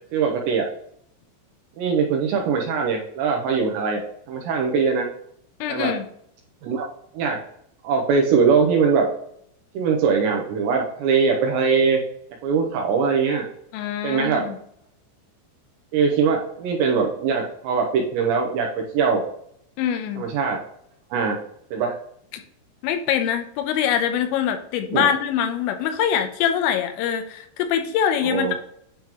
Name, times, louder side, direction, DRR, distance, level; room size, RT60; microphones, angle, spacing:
voice 1, 0.1-0.7 1.8-4.0 4.3-5.1 5.7-5.9 6.6-6.9 7.1-7.4 7.8-9.1 9.7-12.0 12.4-13.5 14.0-14.5 15.9-18.7 18.9-19.2 20.2-20.6 21.1-21.4 21.7-21.9 24.9-25.1 28.2-28.5, right 5 dB, 80° right, 1 dB, 2.6 m, -21 dB
voice 2, 5.6-6.0 13.7-14.6 19.8-20.3 22.8-28.6, left 9 dB, 85° left, 7 dB, 3.3 m, -24 dB
10.0 x 3.7 x 2.9 m, 0.69 s
omnidirectional pair, 5.8 m